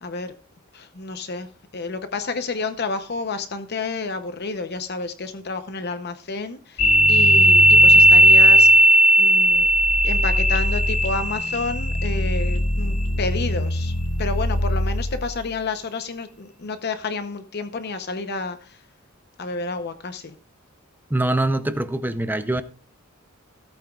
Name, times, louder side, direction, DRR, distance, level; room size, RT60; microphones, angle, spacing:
voice 1, 0.0-0.3 0.7-9.7 10.0-18.8 19.4-20.3, left 3 dB, 50° left, 0.8 m, -30 dB
sound 1, 6.8-15.4, right 1 dB, 75° left, 2.3 m, -17 dB
voice 2, 21.1-22.6, right 1 dB, 10° right, 0.6 m, -23 dB
16.5 x 8.8 x 2.4 m
head